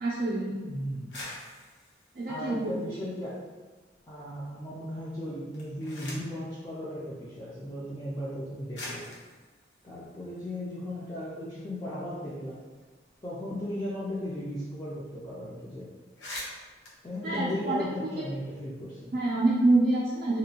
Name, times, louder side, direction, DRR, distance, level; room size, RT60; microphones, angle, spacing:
voice 1, 0.0-0.6 2.2-2.8 17.2-17.8 19.1-20.4, right 2 dB, 50° right, -5 dB, 0.4 m, -26 dB
voice 2, 0.7-1.2 2.3-3.4 4.1-9.1 9.8-12.6 13.2-15.9 17.0-19.2, left 1 dB, 20° left, -8 dB, 0.4 m, -36 dB
sound 1, 0.9-3.5 3.9-4.6 5.4-6.4 7.5-7.6 8.3-8.4 8.7-11.0 11.4-11.5 11.8-14.4 14.6-14.8 15.1-15.3 15.7-15.8 16.0-18.2, left 1 dB, 85° left, 0.8 m, -46 dB
2.9 x 2.6 x 2.7 m, 1.3 s
head